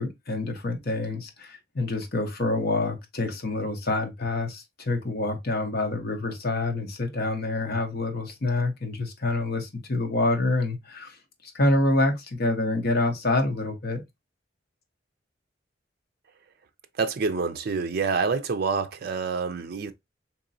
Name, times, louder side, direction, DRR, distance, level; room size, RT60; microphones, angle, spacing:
voice 1, 0.0-11.2 11.4-14.0, left 2 dB, 55° left, 0.9 m, -27 dB
voice 2, 17.0-19.9, right 4 dB, 55° right, 0.4 m, -27 dB
3.9 x 3.0 x 2.7 m
head